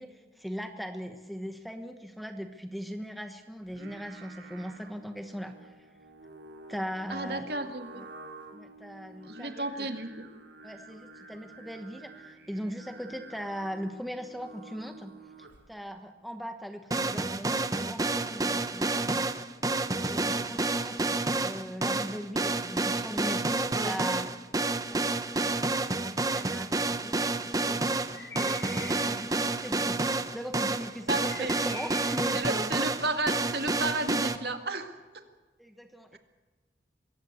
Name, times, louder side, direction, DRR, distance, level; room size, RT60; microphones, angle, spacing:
voice 1, 0.0-5.9 6.7-7.5 7.9-8.0 8.5-10.0 10.6-15.1 15.4-19.5 19.9-24.3 24.7-32.4 35.6-36.2, equal, ahead, 6 dB, 1.1 m, -40 dB
Singing, 3.6-15.8, right 2 dB, 80° right, 2.8 m, -50 dB
voice 2, 7.1-8.0 9.2-10.1 31.1-31.5 32.3-35.2 36.1-36.2, right 2 dB, 60° right, 6 dB, 2.1 m, -33 dB
sound 1, 16.9-34.4, right 2 dB, 20° right, 0.8 m, -29 dB
sound 2, 28.0-33.7, left 2 dB, 70° left, 5.6 m, -47 dB
23.0 x 16.5 x 8.2 m, 1.3 s
head